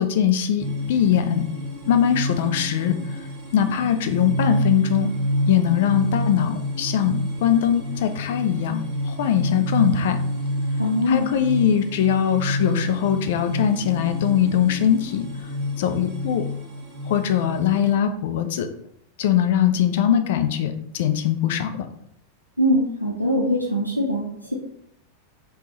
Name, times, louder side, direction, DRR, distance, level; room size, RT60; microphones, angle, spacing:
voice 1, 0.0-1.4 1.9-3.0 3.5-5.1 5.5-10.2 11.1-15.5 15.8-16.5 17.1-18.7 19.2-21.9, left 9 dB, 55° left, 8 dB, 0.4 m, -21 dB
sound 1, 0.6-17.9, equal, 40° right, 1.4 m, -28 dB
voice 2, 10.8-11.3 22.6-24.5, left 1 dB, 90° right, -2 dB, 0.5 m, -22 dB
3.4 x 3.0 x 2.8 m, 0.72 s
figure-of-eight pair, 90°, 0 cm